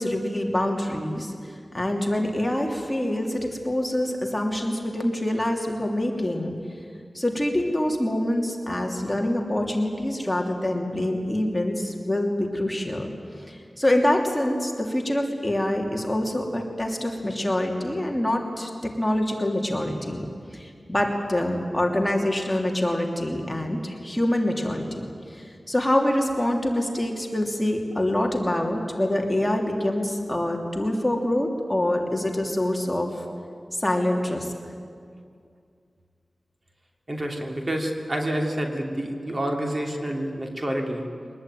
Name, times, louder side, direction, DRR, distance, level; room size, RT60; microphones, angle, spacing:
voice 1, 0.0-6.5 7.1-13.1 13.5-20.3 20.5-25.0 25.3-33.2 33.7-34.5, left 1 dB, 15° left, 1 dB, 2.9 m, -25 dB
voice 2, 37.1-41.0, right 1 dB, 35° right, 2 dB, 3.1 m, -28 dB
23.0 x 20.0 x 9.3 m, 2.3 s
wide cardioid pair, 85°, 0 cm